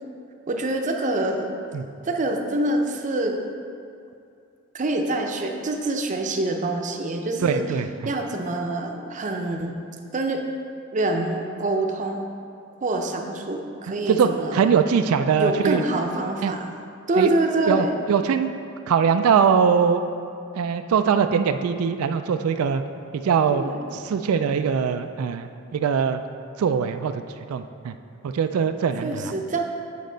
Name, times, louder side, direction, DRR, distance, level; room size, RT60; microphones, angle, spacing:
voice 1, 0.5-1.5 2.0-3.4 4.7-7.6 8.1-9.7 10.1-10.4 10.9-12.3 12.8-14.6 15.4-16.7 17.1-17.9 23.5-23.8 29.0-29.6, right 2 dB, 35° right, 3 dB, 0.6 m, -25 dB
voice 2, 7.4-7.9 14.1-15.8 16.4-16.5 17.2-17.3 17.7-18.5 18.9-20.0 20.6-22.8 23.1-23.6 23.9-26.2 26.6-27.2 27.5-27.9 28.2-29.3, right 6 dB, 85° right, 8 dB, 0.3 m, -22 dB
8.4 x 5.2 x 3.9 m, 2.5 s
head